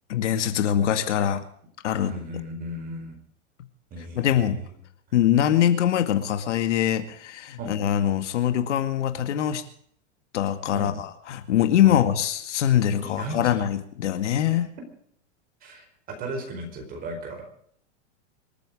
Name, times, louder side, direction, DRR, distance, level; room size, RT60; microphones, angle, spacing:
voice 1, 0.1-1.4 1.8-2.1 4.2-4.6 5.1-9.6 10.3-14.7, left 10 dB, 80° left, 9 dB, 2.2 m, -23 dB
voice 2, 2.0-3.1 3.9-4.7 7.6-7.7 10.7-10.9 11.8-12.0 13.0-13.7 14.5-14.6 15.6-17.4, right 1 dB, 25° right, 4 dB, 4.6 m, -36 dB
26.0 x 9.3 x 5.0 m, 0.64 s
supercardioid pair, 160°, 36 cm